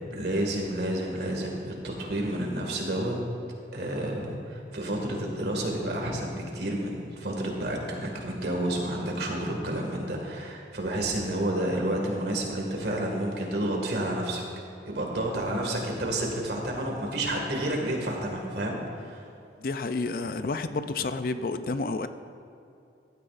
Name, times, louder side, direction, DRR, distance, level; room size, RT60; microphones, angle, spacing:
voice 1, 0.1-3.1 3.7-14.4 14.9-18.8 19.0-19.2, right 1 dB, 65° right, 0 dB, 2.0 m, -30 dB
voice 2, 19.6-22.1, left 3 dB, 50° left, 10 dB, 0.4 m, -30 dB
15.0 x 13.0 x 2.5 m, 2.7 s
head